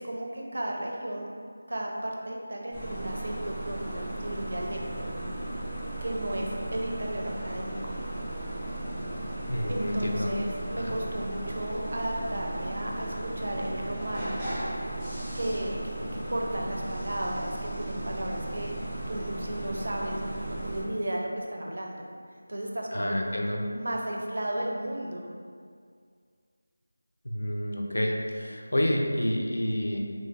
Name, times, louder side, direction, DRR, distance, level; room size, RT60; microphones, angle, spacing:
voice 1, 0.0-1.3 1.7-5.1 6.0-7.9 9.7-14.4 15.3-22.1 22.5-23.2 23.7-25.3, right 1 dB, 65° right, -1 dB, 0.4 m, -34 dB
sound 1, 2.7-20.8, right 1 dB, ahead, 0.4 m, -35 dB
voice 2, 9.5-10.3 10.8-10.9 22.9-23.6 27.2-30.0, equal, 85° left, 0 dB, 0.4 m, -29 dB
3.1 x 2.5 x 2.4 m, 2.1 s
figure-of-eight pair, 180°, 0 cm